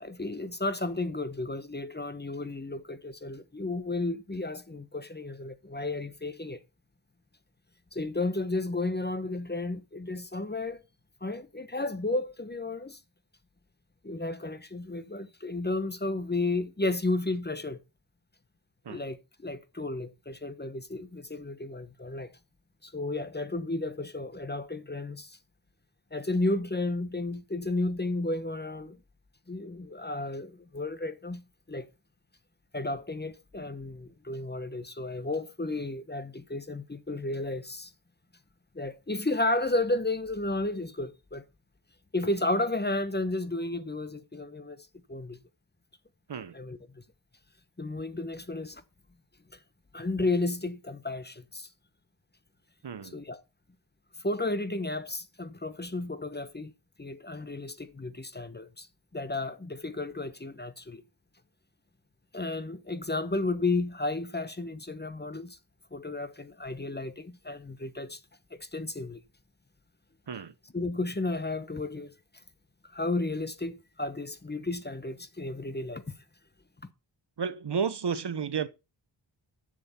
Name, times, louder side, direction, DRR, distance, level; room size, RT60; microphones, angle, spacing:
voice 1, 0.0-6.6 7.9-10.8 11.2-13.0 14.0-17.8 18.9-22.3 22.8-25.4 26.1-29.0 29.5-31.9 32.7-37.9 38.7-41.4 42.1-45.4 46.5-47.0 47.8-48.8 49.9-51.7 53.0-53.4 54.2-56.7 57.0-58.9 59.1-61.0 62.3-65.6 65.9-68.2 68.5-69.2 70.7-72.1 72.8-76.0, left 2 dB, 20° left, 1.0 m, -33 dB
voice 2, 52.8-53.1 70.3-70.5 77.4-78.7, right 6 dB, 60° right, 1.0 m, -32 dB
10.5 x 7.7 x 4.3 m
wide cardioid pair, 65°, 46 cm